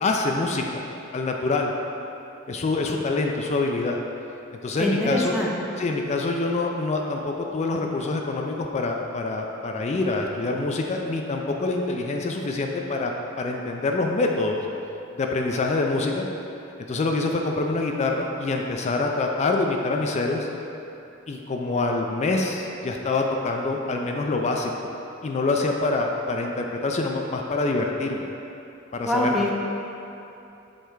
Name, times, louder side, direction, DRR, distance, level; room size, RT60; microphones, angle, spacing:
voice 1, 0.0-0.8 1.1-1.7 2.5-4.0 4.6-5.4 5.8-13.1 13.4-14.6 15.1-16.3 16.9-20.5 21.3-24.7 25.2-28.2 28.9-29.3, left 3 dB, 30° left, 2 dB, 0.3 m, -25 dB
voice 2, 4.8-5.5 29.0-29.6, left 1 dB, ahead, -4 dB, 0.6 m, -24 dB
6.5 x 3.3 x 4.6 m, 2.9 s
head